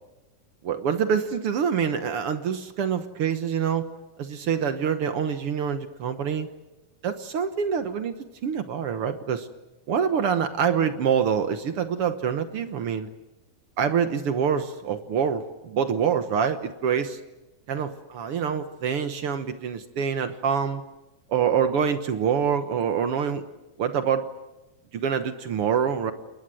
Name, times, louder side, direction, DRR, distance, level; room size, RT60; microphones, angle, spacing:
voice 1, 0.6-3.9 4.2-6.5 7.0-8.2 8.4-9.5 9.9-13.1 13.8-17.2 17.7-20.8 21.3-23.4 23.8-24.3 24.9-26.1, right 7 dB, 60° right, 9 dB, 1.7 m, -26 dB
29.5 x 20.5 x 7.8 m, 1.1 s
omnidirectional pair, 3.5 m